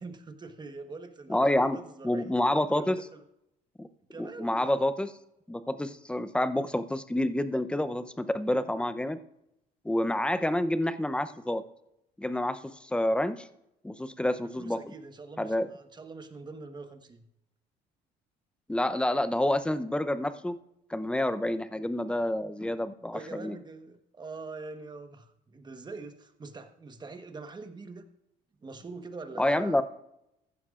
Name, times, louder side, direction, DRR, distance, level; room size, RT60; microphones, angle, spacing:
voice 1, 0.0-3.2 4.1-4.7 14.6-17.3 23.1-28.1 28.6-29.8, right 3 dB, 25° right, 7 dB, 1.2 m, -44 dB
voice 2, 1.3-1.8 2.0-3.0 3.8-3.9 4.2-5.1 5.5-9.2 9.8-11.6 12.2-13.5 13.8-14.9 15.4-15.7 18.7-20.6 20.9-23.6 29.4-29.8, left 1 dB, 5° left, 12 dB, 0.6 m, -28 dB
15.0 x 11.0 x 2.5 m, 0.82 s
cardioid pair, 110°, 17 cm